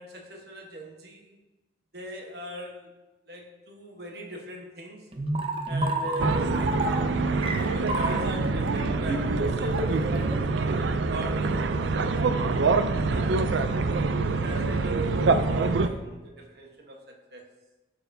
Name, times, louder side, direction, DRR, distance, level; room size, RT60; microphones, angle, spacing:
voice 1, 0.0-1.3 1.9-2.9 3.3-5.1 5.7-6.7 7.2-11.6 11.9-12.5 12.9-17.5, right 1 dB, 60° right, 0 dB, 1.2 m, -40 dB
sound 1, 5.1-10.4, right 1 dB, 30° right, 0.6 m, -30 dB
sound 2, 6.2-15.9, right 3 dB, 80° right, 0.4 m, -25 dB
12.0 x 4.4 x 2.7 m, 1.1 s
head